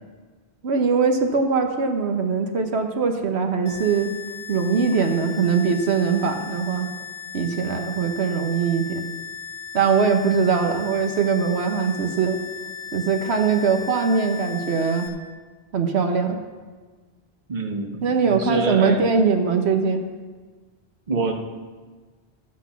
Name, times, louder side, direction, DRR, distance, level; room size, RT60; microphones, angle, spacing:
voice 1, 0.6-4.1 4.5-6.9 7.3-9.0 9.7-12.4 12.9-15.1 15.7-16.4 18.0-20.1, right 5 dB, 75° right, 5 dB, 1.2 m, -21 dB
sound 1, 3.7-15.1, left 7 dB, 5° right, 2.1 m, -37 dB
voice 2, 17.5-19.0 21.1-21.3, right 3 dB, 45° right, 3 dB, 1.2 m, -26 dB
13.5 x 8.3 x 5.7 m, 1.4 s
omnidirectional pair, 1.1 m